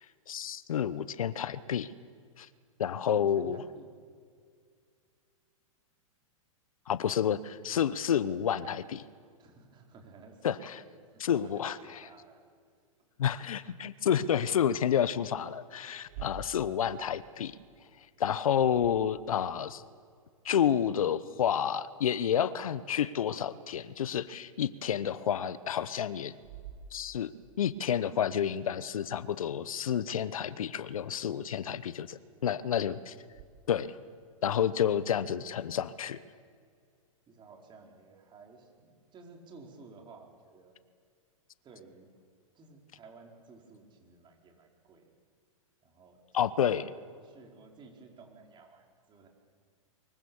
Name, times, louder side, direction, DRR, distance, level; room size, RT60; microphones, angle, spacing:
voice 1, 0.3-1.9 2.4-2.5 2.8-3.6 6.9-7.4 7.6-9.0 10.4-10.8 11.2-12.1 13.2-17.5 18.2-19.8 20.4-26.3 26.9-27.3 27.6-33.1 33.7-33.9 34.4-36.2 46.3-46.8, left 9 dB, 75° left, 16 dB, 1.0 m, -30 dB
voice 2, 3.1-3.9 7.0-7.4 9.4-10.9 11.2-12.4 32.3-32.6 37.3-40.7 41.6-42.1 42.5-45.0 45.8-46.2 46.4-46.9 47.2-49.3, right 4 dB, 25° right, 1 dB, 4.7 m, -54 dB
sound 1, 16.0-19.5 24.0-24.1 25.0-25.1 26.4-27.6 33.3-33.4, right 7 dB, 50° right, 2.0 m, -49 dB
24.0 x 22.5 x 7.2 m, 2.1 s
hypercardioid pair, 115°, 18 cm